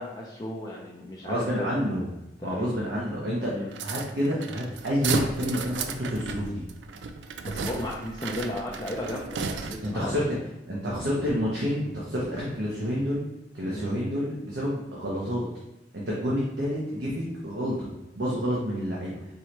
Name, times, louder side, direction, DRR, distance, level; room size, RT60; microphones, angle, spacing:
voice 1, 0.0-1.7 2.4-2.8 3.5-3.7 7.4-10.2 13.6-13.9, left 1 dB, 25° left, -4 dB, 0.5 m, -35 dB
voice 2, 1.2-2.1 2.4-3.5 3.8-6.6 9.8-10.2 10.7-13.2 13.5-15.5 15.9-17.9 18.1-19.2, equal, 70° right, -5 dB, 0.9 m, -29 dB
sound 1, 3.7-10.1, right 5 dB, 85° right, 0.4 m, -34 dB
4.5 x 3.3 x 3.0 m, 0.95 s
head